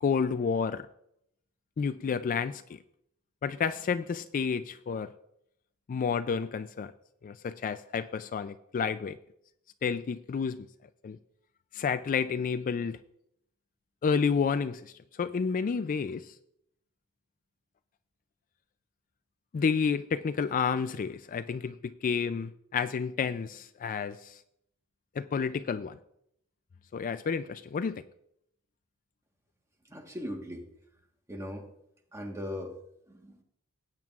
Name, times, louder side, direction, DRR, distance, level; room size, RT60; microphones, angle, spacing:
voice 1, 0.0-0.9 1.8-2.8 3.4-5.1 5.9-6.9 7.2-9.2 9.8-10.7 11.0-11.2 11.7-13.0 14.0-16.4 19.5-24.4 25.2-26.0 26.9-28.0, left 6 dB, 35° left, 11 dB, 0.3 m, -30 dB
voice 2, 29.8-30.7 31.3-31.7 32.1-32.8 33.1-33.4, left 1 dB, 15° right, 3 dB, 1.3 m, -39 dB
18.0 x 8.9 x 2.4 m, 0.75 s
head